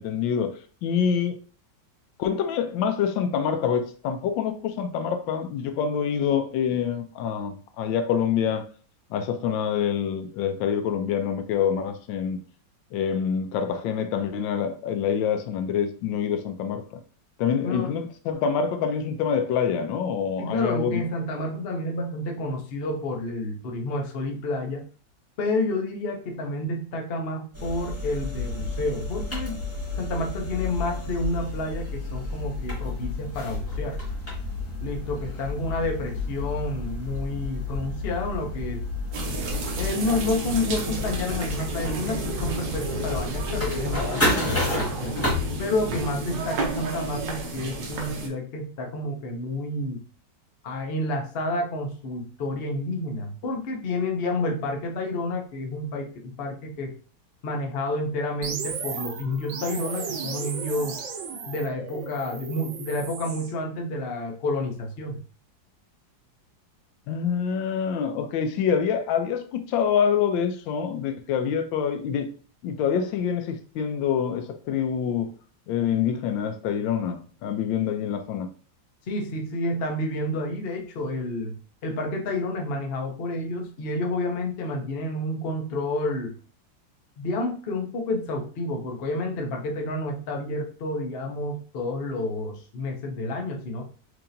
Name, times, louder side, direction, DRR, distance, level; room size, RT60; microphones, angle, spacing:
voice 1, 0.0-1.4 2.2-8.6 9.1-12.4 12.9-17.0 17.4-21.0 67.1-72.3 72.6-75.3 75.7-78.5, left 7 dB, 85° left, 1.3 m, -26 dB
voice 2, 17.6-17.9 20.4-24.8 25.4-29.6 30.0-34.0 34.8-38.9 39.8-45.2 45.6-50.0 50.6-56.9 57.4-61.0 61.5-65.2 79.1-81.6 81.8-86.3 87.2-93.9, left 2 dB, 55° left, 0.6 m, -30 dB
sound 1, 27.5-45.3, left 2 dB, 10° left, 1.3 m, -31 dB
sound 2, 39.1-48.3, right 1 dB, 70° right, 1.4 m, -31 dB
sound 3, 58.4-63.5, right 6 dB, 85° right, 1.4 m, -35 dB
4.6 x 2.8 x 2.6 m
omnidirectional pair, 2.0 m